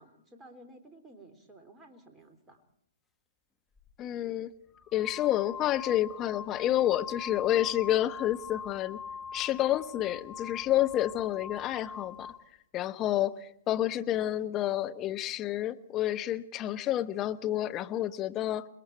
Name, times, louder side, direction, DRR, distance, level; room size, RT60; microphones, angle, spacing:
voice 1, 0.0-2.6, right 1 dB, 15° right, 6 dB, 3.5 m, -54 dB
sound 1, 3.8-3.9 4.7-12.5, left 6 dB, 10° left, 1.5 m, -43 dB
voice 2, 4.0-4.5 4.9-9.0 9.3-12.3 12.7-18.7, left 13 dB, 25° left, 10 dB, 1.2 m, -29 dB
27.5 x 21.5 x 4.6 m, 0.69 s
figure-of-eight pair, 120°, 0 cm